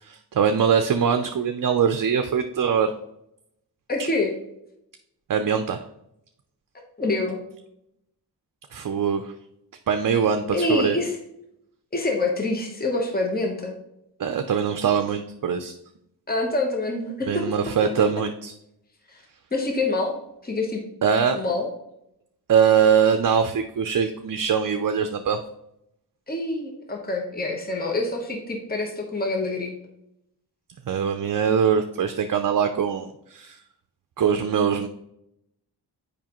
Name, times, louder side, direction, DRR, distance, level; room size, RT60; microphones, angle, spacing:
voice 1, 0.0-2.9 4.0-4.1 5.3-5.8 8.7-9.3 9.9-11.0 14.2-15.7 17.3-18.5 21.0-21.4 22.5-25.4 30.9-33.6 34.2-34.9, right 7 dB, 55° right, 7 dB, 0.5 m, -22 dB
voice 2, 3.9-4.3 7.0-7.4 10.5-11.2 11.9-13.7 16.3-17.4 19.1-19.2 19.5-20.2 20.4-20.8 21.4-21.7 26.3-29.7, left 2 dB, 20° left, 1 dB, 1.0 m, -26 dB
7.2 x 5.0 x 3.0 m, 0.81 s
wide cardioid pair, 60°, 41 cm